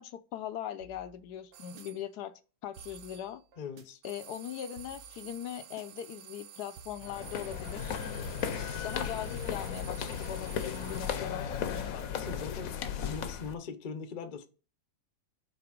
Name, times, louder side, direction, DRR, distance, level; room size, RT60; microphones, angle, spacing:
voice 1, 0.0-2.3 2.6-3.4 4.0-8.0 8.5-11.9, left 10 dB, 85° left, 1.2 m, -40 dB
sound 1, 0.8-1.8 2.8-3.8 4.8-5.8 6.8-12.6, right 4 dB, 75° right, 1.4 m, -53 dB
sound 2, 1.5-2.0 2.7-3.4 4.0-11.4, right 11 dB, 90° right, 1.2 m, -51 dB
voice 2, 3.6-4.0 11.9-12.7 13.0-14.5, left 5 dB, 45° left, 0.7 m, -41 dB
sound 3, 7.0-13.5, left 8 dB, 65° left, 1.1 m, -36 dB
5.8 x 4.1 x 5.0 m
omnidirectional pair, 1.7 m